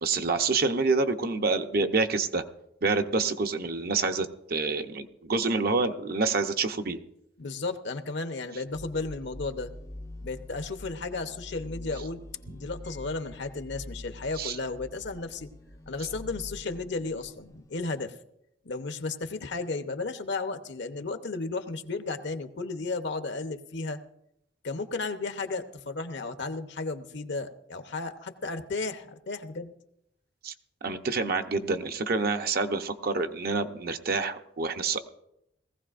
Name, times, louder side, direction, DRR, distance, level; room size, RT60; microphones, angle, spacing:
voice 1, 0.0-2.4 2.8-7.0 14.4-14.6 30.4-30.5 30.8-35.0, right 4 dB, 55° right, 7 dB, 0.7 m, -27 dB
voice 2, 7.4-9.7 10.2-15.5 15.9-18.1 18.6-24.0 24.6-29.7, left 3 dB, 70° left, 8 dB, 0.9 m, -34 dB
sound 1, 8.6-18.0, left 1 dB, 15° left, 0.4 m, -45 dB
19.0 x 15.5 x 2.5 m, 0.80 s
head